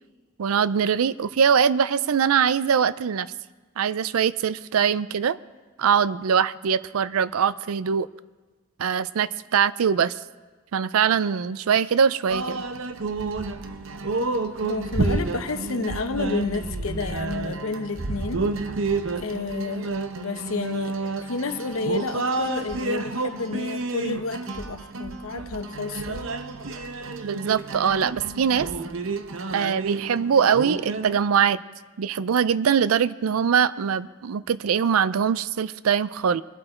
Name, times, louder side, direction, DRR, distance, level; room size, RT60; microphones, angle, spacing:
voice 1, 0.4-3.3 3.8-5.4 5.8-8.1 8.8-10.1 10.7-12.6 27.2-28.7 29.5-31.6 32.0-36.4, right 7 dB, 90° right, 17 dB, 0.4 m, -22 dB
sound 1, 12.3-31.2, right 3 dB, 70° right, 0.8 m, -30 dB
voice 2, 14.6-18.5 19.2-19.9 20.2-26.3, left 3 dB, 80° left, 9 dB, 0.9 m, -30 dB
23.0 x 7.9 x 4.4 m, 1.3 s
head